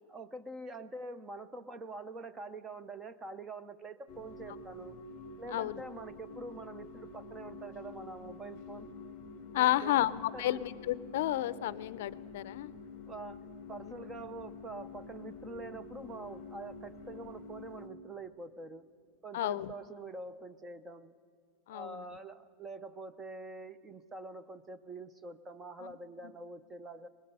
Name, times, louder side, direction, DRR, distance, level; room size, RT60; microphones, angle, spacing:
voice 1, 0.1-4.9 5.4-8.9 9.6-10.0 10.3-10.6 13.1-18.9 19.2-21.1 21.7-27.1, right 2 dB, 10° right, 13 dB, 0.5 m, -45 dB
sound 1, 4.1-17.9, left 4 dB, 25° left, 1.8 m, -48 dB
voice 2, 5.5-5.8 9.5-12.7 13.8-14.0 19.3-19.7 21.7-22.0 25.8-25.9, left 14 dB, 55° left, 17 dB, 0.5 m, -32 dB
24.0 x 20.0 x 5.4 m, 2.3 s
supercardioid pair, 170°, 0 cm